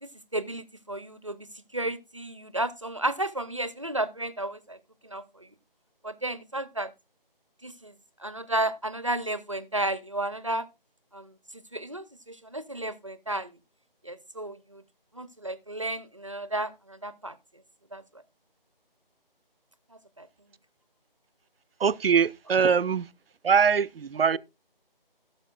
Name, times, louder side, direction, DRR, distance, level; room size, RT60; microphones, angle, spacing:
voice 1, 0.0-1.5 1.7-4.8 5.0-5.5 6.0-6.9 7.6-7.9 8.2-10.7 11.1-11.3 11.7-13.5 14.0-14.8 15.1-17.4 17.9-18.0 20.2-20.3, right 1 dB, 35° right, 0.5 m, -32 dB
voice 2, 21.8-23.1 23.4-24.4, right 6 dB, 80° right, 0.5 m, -22 dB
16.5 x 6.6 x 2.3 m
figure-of-eight pair, 165°, 29 cm